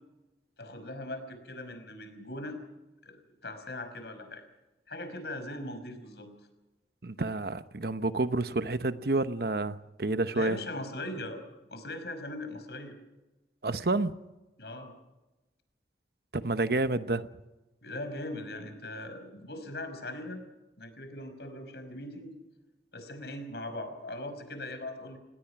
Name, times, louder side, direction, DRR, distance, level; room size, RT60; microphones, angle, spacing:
voice 1, 0.6-2.6 3.0-3.2 3.4-4.4 4.9-6.3 10.3-11.4 11.7-12.9 14.6-14.9 17.8-20.4 20.8-22.3 22.9-25.2, left 1 dB, 70° left, 5.4 m, -40 dB
voice 2, 7.0-10.6 13.6-14.2 16.3-17.3, right 2 dB, 60° right, 1.0 m, -29 dB
29.0 x 19.5 x 6.0 m
head